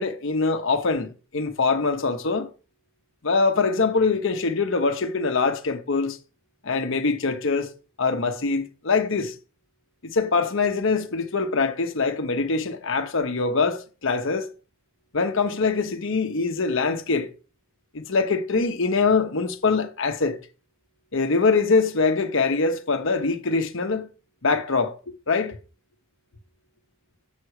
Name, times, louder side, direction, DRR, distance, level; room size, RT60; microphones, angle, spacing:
voice 1, 0.0-2.5 3.2-6.2 6.6-7.7 8.0-9.3 10.0-14.5 15.1-17.3 17.9-20.4 21.1-24.1 24.4-25.0 25.3-25.6, left 4 dB, 65° left, 1.0 m, -23 dB
7.5 x 6.0 x 4.9 m
head